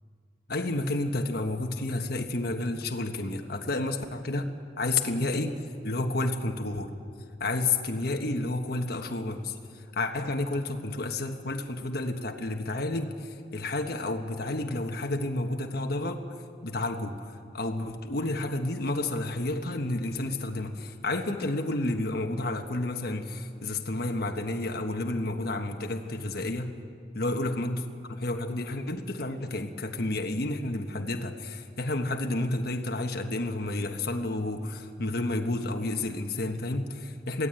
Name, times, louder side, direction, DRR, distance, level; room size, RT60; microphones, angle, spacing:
voice 1, 0.5-5.6 5.8-6.9 7.4-16.3 16.6-26.8 27.1-37.5, left 2 dB, 60° left, 4 dB, 1.3 m, -31 dB
22.5 x 16.0 x 9.0 m, 2.3 s
head